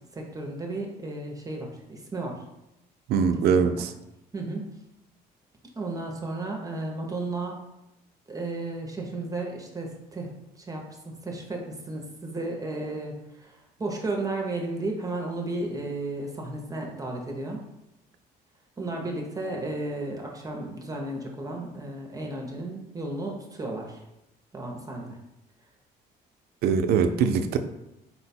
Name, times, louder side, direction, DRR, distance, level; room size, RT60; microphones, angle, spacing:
voice 1, 0.1-2.4 3.5-3.8 4.3-4.7 5.8-7.6 8.3-10.3 10.6-17.6 18.8-24.0 24.5-25.2, right 2 dB, 20° right, 1 dB, 0.6 m, -34 dB
voice 2, 3.1-3.9 26.6-27.6, right 6 dB, 70° right, 8 dB, 0.4 m, -22 dB
4.2 x 2.2 x 4.1 m, 0.92 s
cardioid pair, 110°, 17 cm